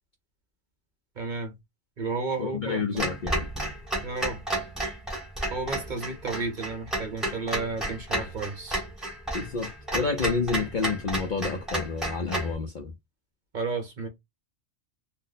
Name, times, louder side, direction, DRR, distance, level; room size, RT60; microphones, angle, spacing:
voice 1, 1.2-1.6 2.0-3.1 4.0-4.4 5.5-8.8 13.5-14.1, right 3 dB, 45° right, 0.9 m, -32 dB
voice 2, 2.4-3.5 9.3-12.9, left 4 dB, 55° left, 0.6 m, -29 dB
Clock, 3.0-12.5, right 1 dB, ahead, 1.0 m, -32 dB
2.7 x 2.1 x 3.9 m
omnidirectional pair, 1.3 m